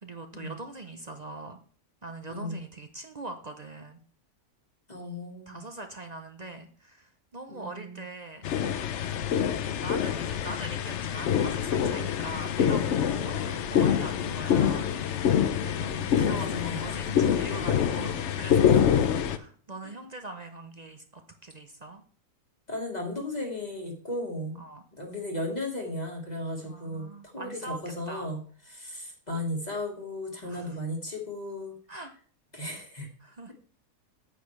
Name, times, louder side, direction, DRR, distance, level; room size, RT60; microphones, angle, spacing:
voice 1, 0.0-1.6 2.0-4.0 5.5-8.9 9.2-15.3 15.6-19.0 19.4-22.0 24.6-24.8 26.6-27.8 28.1-28.3 30.4-30.8 31.9-32.1 33.2-33.5, right 2 dB, 40° right, 6 dB, 0.6 m, -42 dB
voice 2, 2.3-2.6 4.9-5.6 7.5-8.0 15.8-17.1 22.7-24.6 25.0-28.4 28.7-31.7 32.5-33.1, left 1 dB, 25° left, 1 dB, 1.7 m, -35 dB
sound 1, 8.4-19.4, left 8 dB, 60° left, 0.8 m, -26 dB
9.2 x 8.4 x 3.2 m, 0.43 s
omnidirectional pair, 1.6 m